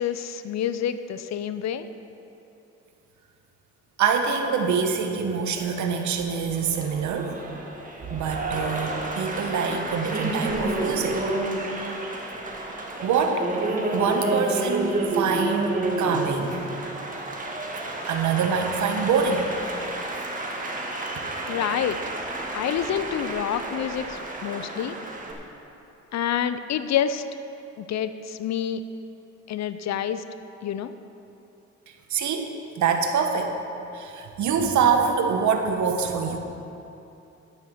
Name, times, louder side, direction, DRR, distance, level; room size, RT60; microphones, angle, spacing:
voice 1, 0.0-1.9 21.5-22.0 22.5-25.0 26.1-27.2 27.8-28.8 29.5-30.2 30.6-30.9, left 9 dB, 60° left, 12 dB, 0.6 m, -28 dB
voice 2, 4.0-7.3 8.1-11.2 13.0-13.5 13.9-16.6 18.1-19.5 32.1-32.5 32.8-33.6 33.9-36.4, right 6 dB, 70° right, 4 dB, 1.2 m, -25 dB
Applause, 5.6-25.3, right 2 dB, 25° right, 1.8 m, -30 dB
12.0 x 5.7 x 7.8 m, 2.9 s
cardioid pair, 90°, 30 cm